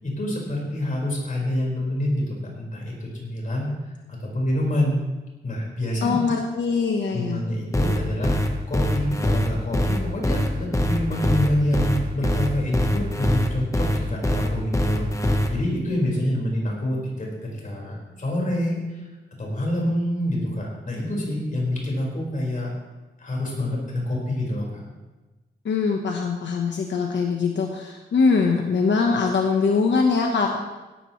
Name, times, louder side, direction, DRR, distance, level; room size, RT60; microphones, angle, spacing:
voice 1, 0.0-3.7 4.1-5.0 5.4-6.2 7.1-8.4 8.7-19.1 19.4-22.7 23.2-24.8, left 1 dB, 45° left, -2 dB, 4.8 m, -27 dB
voice 2, 6.0-7.4 25.6-30.6, left 4 dB, 90° left, 2 dB, 1.1 m, -22 dB
sound 1, 7.7-15.5, left 1 dB, 15° left, 1.1 m, -22 dB
17.0 x 13.0 x 3.2 m, 1.1 s
wide cardioid pair, 140°, 18 cm